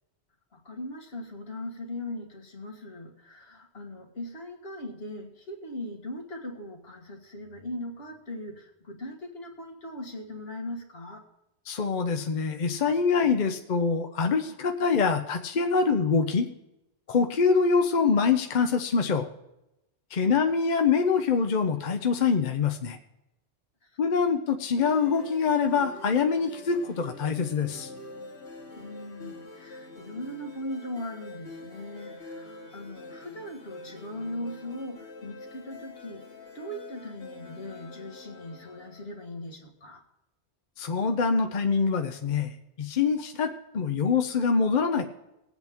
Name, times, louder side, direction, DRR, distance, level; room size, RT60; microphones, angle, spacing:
voice 1, 0.5-11.2 20.2-20.6 23.8-23.9 28.8-36.2 36.5-40.0, left 1 dB, 65° left, 2 dB, 1.9 m, -39 dB
voice 2, 11.7-16.5 17.1-19.3 20.1-23.0 24.0-27.9 40.8-42.5 42.8-45.1, left 5 dB, 50° left, 6 dB, 0.7 m, -25 dB
sound 1, 24.7-39.3, left 2 dB, 90° left, 2.0 m, -45 dB
20.0 x 8.1 x 3.5 m, 0.90 s
omnidirectional pair, 1.1 m